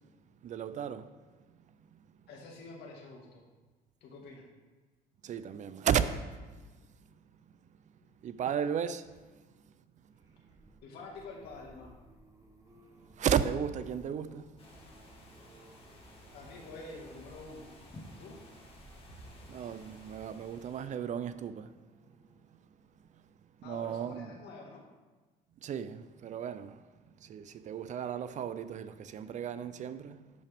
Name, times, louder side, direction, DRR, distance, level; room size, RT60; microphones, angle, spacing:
voice 1, 0.4-1.1 1.9-2.0 5.2-6.4 8.2-9.1 12.9-14.6 15.5-15.6 19.5-21.8 23.1-23.2 23.6-24.3 25.6-26.8 27.2-30.3, right 8 dB, 45° right, 0.4 m, -34 dB
voice 2, 2.3-3.4 4.0-4.5 10.8-12.0 16.3-17.7 18.2-18.4 23.6-24.8, left 3 dB, 80° left, 1.9 m, -47 dB
sound 1, 10.0-23.4 23.9-24.2 24.5-24.6, right 1 dB, 20° right, 1.1 m, -60 dB
sound 2, 14.6-20.9, left 1 dB, 35° left, 1.5 m, -54 dB
11.0 x 5.7 x 3.5 m
cardioid pair, 110°, 17 cm